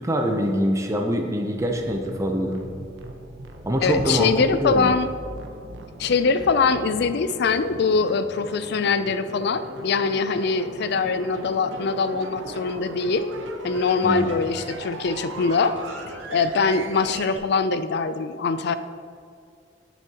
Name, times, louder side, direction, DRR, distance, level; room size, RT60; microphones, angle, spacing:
voice 1, 0.0-2.6 3.6-4.3 4.6-4.9 14.0-14.3, equal, 15° right, 2 dB, 0.6 m, -24 dB
sound 1, 1.5-17.4, right 2 dB, 85° right, 0.8 m, -38 dB
voice 2, 3.8-5.1 6.0-13.2 13.6-15.8 16.3-18.8, left 4 dB, 60° left, 12 dB, 0.4 m, -23 dB
10.0 x 7.1 x 2.9 m, 2.3 s
head